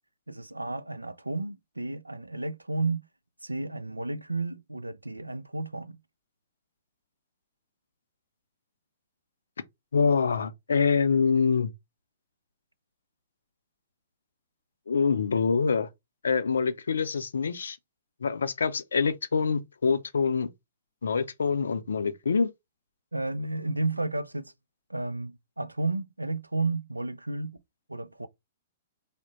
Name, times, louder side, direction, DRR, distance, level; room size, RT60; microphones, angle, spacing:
voice 1, 0.3-3.0 3.4-6.0 23.1-24.5 24.9-27.6 27.9-28.3, right 3 dB, 85° right, 0.4 m, -32 dB
voice 2, 9.9-11.7 14.9-15.9 16.2-17.8 18.2-20.5 21.0-22.5, left 5 dB, 70° left, 0.5 m, -25 dB
3.5 x 2.1 x 3.8 m
figure-of-eight pair, 110°, 0 cm